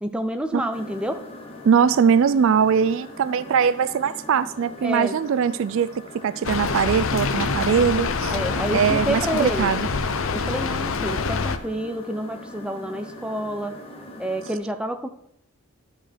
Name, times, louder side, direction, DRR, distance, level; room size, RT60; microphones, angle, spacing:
voice 1, 0.0-1.2 4.8-5.2 8.3-9.7 10.3-13.8 14.2-15.1, equal, 5° right, 6 dB, 0.6 m, -28 dB
sound 1, 0.7-14.6, left 1 dB, 25° left, 1.2 m, -41 dB
voice 2, 1.6-5.9 6.1-8.3 8.7-9.9, right 7 dB, 60° right, 14 dB, 0.3 m, -21 dB
Rain, 6.4-11.6, left 4 dB, 60° left, 0.6 m, -25 dB
12.0 x 5.1 x 4.5 m, 0.72 s
head